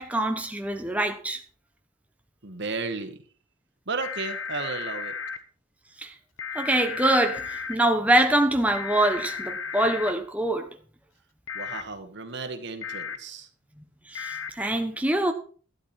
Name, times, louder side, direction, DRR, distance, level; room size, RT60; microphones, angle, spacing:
voice 1, 0.0-1.4 6.0-6.1 6.5-10.7 14.1-15.3, right 1 dB, 5° right, 1.1 m, -24 dB
voice 2, 2.4-3.2 3.9-5.1 11.5-13.5, right 4 dB, 60° right, 1.9 m, -34 dB
sound 1, 4.0-5.4 6.4-7.8 8.7-10.1 11.5-11.8 12.8-13.2 14.1-14.5, left 6 dB, 80° left, 1.3 m, -34 dB
12.0 x 11.5 x 4.5 m
head